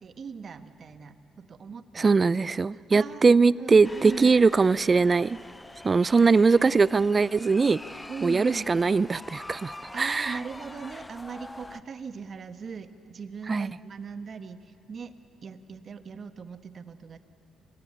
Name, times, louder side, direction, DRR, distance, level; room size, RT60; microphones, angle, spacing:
voice 1, 0.0-2.2 2.6-4.3 6.1-6.7 8.1-8.7 9.9-15.1 15.4-17.2, right 5 dB, 50° right, 10 dB, 1.2 m, -40 dB
voice 2, 2.0-5.4 5.8-7.8 8.2-10.4 13.5-13.7, right 4 dB, 30° right, 21 dB, 0.4 m, -21 dB
sound 1, 3.8-11.8, left 2 dB, 15° left, 0.6 m, -44 dB
26.0 x 16.5 x 8.5 m, 2.8 s
cardioid pair, 90°, 0 cm